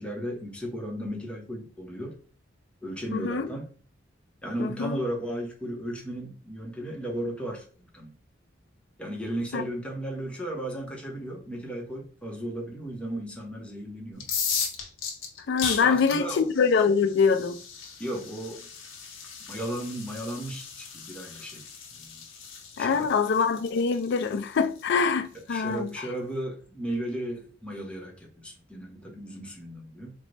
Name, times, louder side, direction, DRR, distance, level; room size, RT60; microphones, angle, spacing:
voice 1, 0.0-2.1 2.8-3.7 4.4-8.1 9.0-14.3 15.8-16.5 18.0-18.7 19.5-22.2 22.8-23.1 25.3-30.1, right 1 dB, 5° left, 0.8 m, -35 dB
voice 2, 3.1-3.5 4.6-5.0 9.5-9.6 15.5-17.6 22.8-25.9, left 5 dB, 60° left, 0.4 m, -24 dB
sound 1, 14.1-25.9, left 6 dB, 85° left, 0.8 m, -37 dB
3.9 x 2.1 x 3.2 m
head